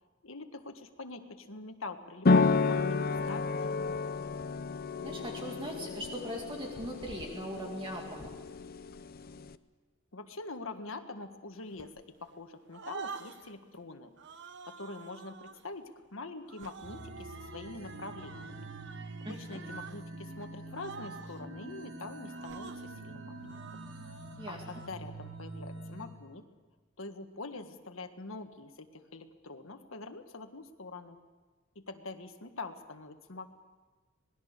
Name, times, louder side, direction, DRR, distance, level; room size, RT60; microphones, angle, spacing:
voice 1, 0.2-3.8 10.1-11.9 12.2-14.1 14.7-18.7 19.2-23.8 24.5-26.4 27.0-31.2 31.7-33.5, left 3 dB, 75° left, 7 dB, 1.6 m, -44 dB
sound 1, 2.2-9.5, left 4 dB, 45° left, 0.6 m, -31 dB
voice 2, 5.0-8.3 19.2-19.6 24.4-24.6, equal, 25° right, 0 dB, 2.3 m, -40 dB
sound 2, 11.7-12.4 12.7-13.6 14.2-15.6 16.5-20.0 20.3-20.5 20.7-21.5 22.3-22.9 23.5-24.9, right 6 dB, 60° right, 0.9 m, -48 dB
sound 3, 16.8-26.1, right 2 dB, 85° right, 4.1 m, -45 dB
26.0 x 19.5 x 6.7 m, 1.3 s
head